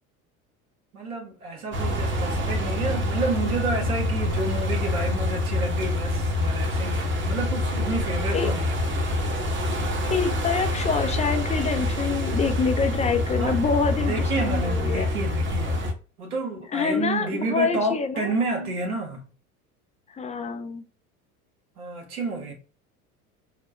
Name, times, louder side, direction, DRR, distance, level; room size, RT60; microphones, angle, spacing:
voice 1, 0.9-9.1 13.4-13.7 14.1-15.9 16.2-19.2 21.8-22.5, right 3 dB, 80° right, 1.3 m, -30 dB
sound 1, 1.7-15.9, left 1 dB, 25° right, 1.1 m, -26 dB
voice 2, 10.1-15.1 16.7-18.4 20.1-20.8, left 5 dB, 15° left, 0.5 m, -26 dB
6.3 x 2.2 x 2.3 m
hypercardioid pair, 75°, 43 cm